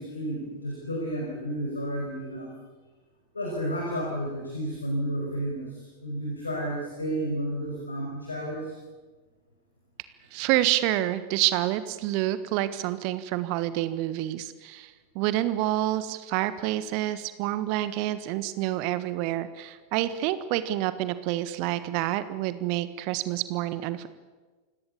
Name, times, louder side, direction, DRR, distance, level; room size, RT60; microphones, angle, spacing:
voice 1, 0.0-2.5 3.3-8.7, right 1 dB, 80° left, 0 dB, 5.8 m, -31 dB
voice 2, 10.3-24.1, right 14 dB, 45° right, 13 dB, 1.4 m, -28 dB
29.0 x 17.5 x 8.4 m, 1.4 s
figure-of-eight pair, 90°, 0 cm